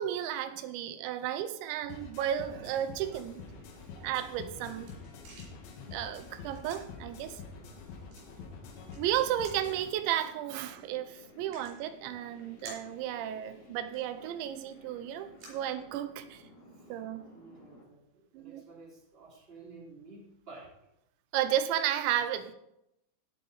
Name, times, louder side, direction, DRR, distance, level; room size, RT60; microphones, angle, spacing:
voice 1, 0.0-3.4 4.0-4.9 5.9-7.4 9.0-16.4 16.9-17.2 18.3-18.6 21.3-22.5, right 11 dB, 90° right, 10 dB, 3.0 m, -33 dB
sound 1, 1.9-9.9, left 5 dB, 80° left, 4.0 m, -47 dB
sound 2, 2.9-17.8, left 1 dB, 45° left, 5.0 m, -55 dB
sound 3, 5.0-16.4, right 2 dB, 70° right, 6.7 m, -56 dB
voice 2, 17.3-20.7, right 3 dB, 15° right, -4 dB, 2.9 m, -52 dB
17.0 x 7.7 x 4.1 m, 0.83 s
omnidirectional pair, 5.2 m